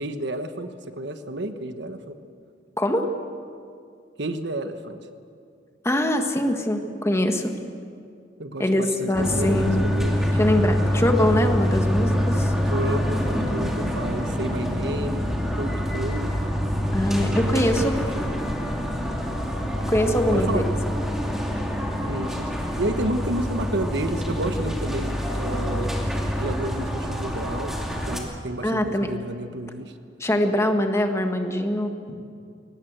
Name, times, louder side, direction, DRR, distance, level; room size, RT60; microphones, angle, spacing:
voice 1, 0.0-2.1 4.2-5.0 8.4-10.2 12.7-15.2 15.5-16.4 17.2-18.5 20.3-20.6 22.0-26.0 26.3-29.9, right 1 dB, 65° right, 8 dB, 1.2 m, -31 dB
voice 2, 2.8-3.1 5.8-7.5 8.6-9.9 10.4-12.5 16.9-18.0 19.9-20.9 28.6-29.1 30.2-31.9, left 1 dB, 15° left, 5 dB, 1.6 m, -23 dB
sound 1, 9.1-28.2, equal, ahead, 2.4 m, -26 dB
22.0 x 19.0 x 8.0 m, 2.3 s
head